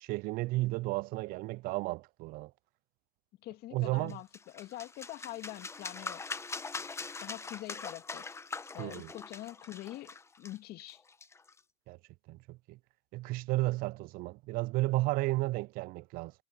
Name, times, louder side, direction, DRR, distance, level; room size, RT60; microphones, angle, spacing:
voice 1, 0.0-2.5 3.7-4.2 8.8-9.1 11.9-12.0 12.3-12.8 13.1-16.3, right 20 dB, 45° right, 0.4 m, -33 dB
voice 2, 3.4-4.3 4.5-6.2 7.2-8.3 8.7-11.0, left 16 dB, 50° left, 2.5 m, -44 dB
sound 1, 4.1-11.6, left 4 dB, 15° left, 1.0 m, -43 dB
supercardioid pair, 110°, 20 cm